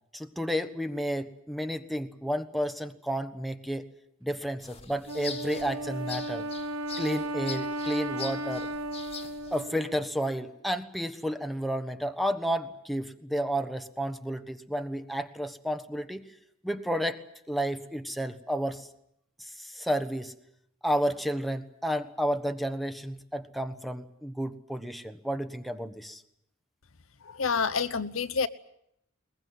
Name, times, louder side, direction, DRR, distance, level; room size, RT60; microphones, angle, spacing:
voice 1, 0.1-3.9 4.2-6.4 7.0-8.7 9.5-16.2 16.6-17.2 17.5-18.9 19.4-20.3 20.8-26.2, equal, ahead, 7 dB, 1.2 m, -31 dB
sound 1, 4.6-9.6, left 6 dB, 30° left, 1.8 m, -43 dB
Wind instrument woodwind instrument, 5.1-10.5, right 1 dB, 85° right, 1.6 m, -35 dB
voice 2, 27.3-28.5, left 5 dB, 75° left, 12 dB, 0.9 m, -28 dB
21.5 x 21.0 x 9.5 m, 0.75 s
head